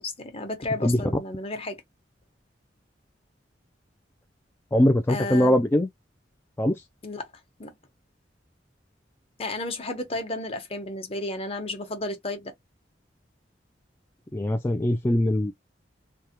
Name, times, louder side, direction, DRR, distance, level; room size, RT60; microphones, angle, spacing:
voice 1, 0.0-1.8 5.1-5.6 7.0-7.3 7.6-7.7 9.4-12.5, left 2 dB, 35° left, 1.0 m, -32 dB
voice 2, 4.7-5.9 6.6-6.8 14.3-15.5, left 1 dB, 15° left, 0.3 m, -22 dB
3.4 x 2.2 x 2.8 m
head